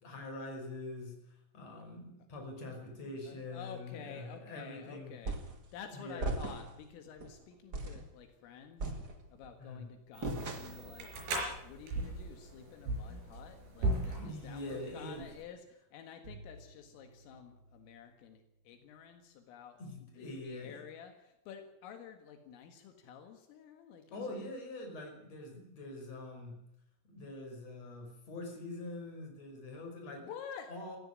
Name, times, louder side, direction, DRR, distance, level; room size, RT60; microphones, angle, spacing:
voice 1, 0.0-5.1 5.9-6.3 9.6-9.9 14.2-15.2 19.8-20.8 24.1-26.6 27.1-30.3 30.7-31.0, left 2 dB, 35° left, 3 dB, 5.9 m, -44 dB
voice 2, 3.2-11.1 11.6-19.8 20.2-24.5 30.2-30.7, left 7 dB, 80° left, 6 dB, 4.3 m, -50 dB
sound 1, 5.2-5.6 6.2-6.8 7.2-7.3 7.7-8.1 8.8-9.5 10.2-10.9, right 2 dB, 75° right, 0.9 m, -38 dB
sound 2, 10.1-15.4, right 2 dB, 55° right, 6.5 m, -38 dB
Bowed string instrument, 16.2-19.3, right 2 dB, 25° right, 2.7 m, -57 dB
18.5 x 15.0 x 9.6 m, 0.80 s
omnidirectional pair, 5.8 m